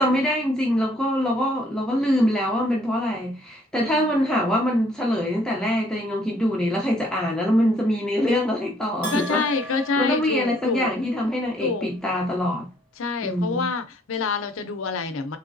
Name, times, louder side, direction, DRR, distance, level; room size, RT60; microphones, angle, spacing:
voice 1, 0.0-9.4 10.0-12.7 13.2-13.7, equal, 5° left, 0.6 m, -24 dB
voice 2, 3.8-4.1 9.1-10.9 11.6-11.9 13.0-15.4, left 4 dB, 90° left, 0.5 m, -27 dB
Bell, 9.0-11.2, right 2 dB, 80° right, 1.5 m, -38 dB
3.7 x 3.1 x 2.5 m
head